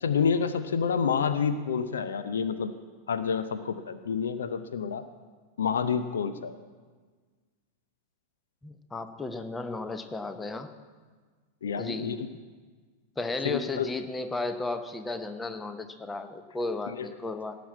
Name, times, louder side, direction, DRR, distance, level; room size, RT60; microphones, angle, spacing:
voice 1, 0.0-2.7 3.1-5.0 5.6-6.5 11.6-12.3 13.4-13.9 16.9-17.1, left 6 dB, 65° left, 11 dB, 0.6 m, -28 dB
voice 2, 8.6-10.7 11.8-12.4 13.2-17.6, left 3 dB, 10° left, 9 dB, 0.9 m, -34 dB
17.5 x 6.1 x 8.3 m, 1.5 s
figure-of-eight pair, 90°, 0 cm